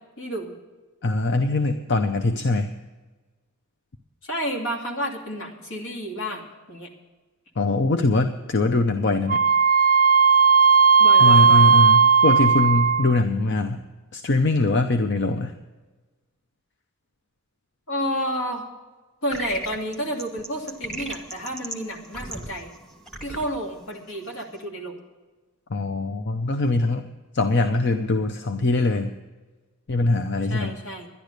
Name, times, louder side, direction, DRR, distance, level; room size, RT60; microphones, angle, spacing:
voice 1, 0.2-0.5 4.2-6.9 11.0-11.7 17.9-18.6 19.2-22.7 23.2-25.0 27.6-27.7 30.5-31.1, equal, 75° left, 0 dB, 2.6 m, -30 dB
voice 2, 1.0-2.7 7.6-9.4 11.2-13.8 14.1-15.5 25.7-27.0 27.3-29.1 29.9-30.7, left 2 dB, 55° left, 7 dB, 0.6 m, -22 dB
Wind instrument woodwind instrument, 9.3-13.2, right 5 dB, 35° right, 0.4 m, -16 dB
sound 1, 19.3-24.6, right 1 dB, ahead, 1.2 m, -37 dB
12.0 x 10.5 x 6.6 m, 1.2 s
head